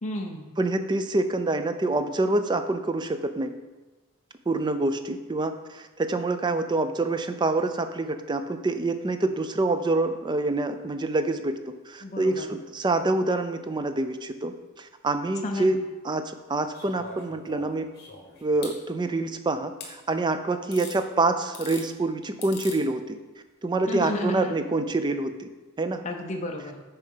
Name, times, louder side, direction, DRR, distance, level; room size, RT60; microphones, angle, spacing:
voice 1, 0.0-0.5 12.0-12.5 15.4-15.8 23.9-24.5 26.0-26.8, left 1 dB, 30° left, 2 dB, 0.6 m, -32 dB
voice 2, 0.6-3.5 4.5-11.6 11.9-15.8 16.0-17.9 18.4-23.2 23.6-25.5 25.8-26.0, right 2 dB, 20° right, 9 dB, 0.4 m, -26 dB
sound 1, 16.7-18.8 19.8-19.9 20.7-21.0 21.4-21.9 22.4-22.8 24.0-24.1, left 3 dB, 45° left, 1.4 m, -42 dB
6.3 x 4.7 x 5.5 m, 1.2 s
head